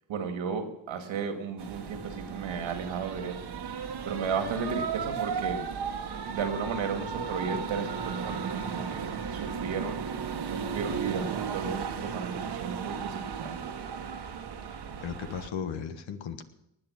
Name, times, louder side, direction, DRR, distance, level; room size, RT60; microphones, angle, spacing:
voice 1, 0.1-3.4 4.0-5.6 6.3-9.0 9.3-10.0 10.5-13.6, right 5 dB, 80° right, 5 dB, 2.2 m, -34 dB
sound 1, 1.6-15.5, right 6 dB, 55° right, 1.4 m, -35 dB
voice 2, 14.7-16.4, left 7 dB, 75° left, 8 dB, 1.5 m, -36 dB
19.0 x 8.5 x 6.4 m, 0.85 s
supercardioid pair, 60°, 46 cm